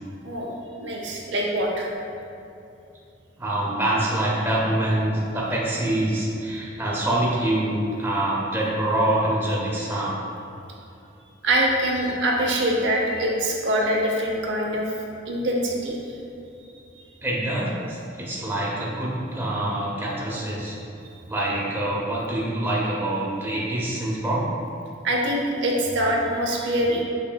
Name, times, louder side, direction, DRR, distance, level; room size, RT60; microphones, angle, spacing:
voice 1, 0.2-1.9 11.4-14.9 15.3-16.1 25.0-27.0, right 1 dB, 75° right, -2 dB, 0.6 m, -24 dB
voice 2, 3.4-10.2 17.2-20.8 21.3-24.4, right 1 dB, 10° right, -5 dB, 0.6 m, -25 dB
6.0 x 3.7 x 2.2 m, 2.7 s
head